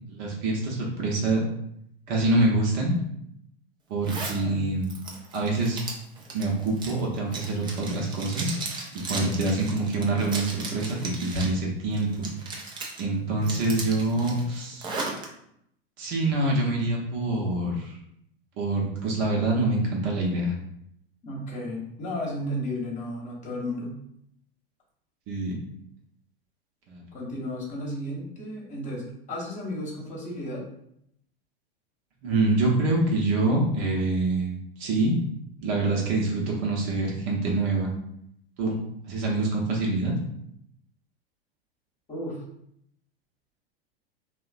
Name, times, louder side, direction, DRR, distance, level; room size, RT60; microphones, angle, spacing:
voice 1, 0.1-1.4 2.1-3.0 3.9-4.9 5.3-5.8 6.3-8.5 9.1-12.3 13.0-14.9 16.0-17.9 18.6-20.5 25.3-25.6 26.9-27.0 32.2-35.1 35.6-37.9 38.6-38.8 39.1-40.1, right 2 dB, 45° right, -2 dB, 0.7 m, -25 dB
Zipper (clothing), 4.0-4.4 4.8-11.6 11.9-13.0 13.4-15.3, right 3 dB, 15° right, 0.4 m, -36 dB
voice 2, 21.2-24.0 27.1-30.6 42.1-42.4, left 1 dB, 25° left, -4 dB, 1.0 m, -33 dB
2.9 x 2.1 x 2.4 m, 0.74 s
figure-of-eight pair, 90°, 31 cm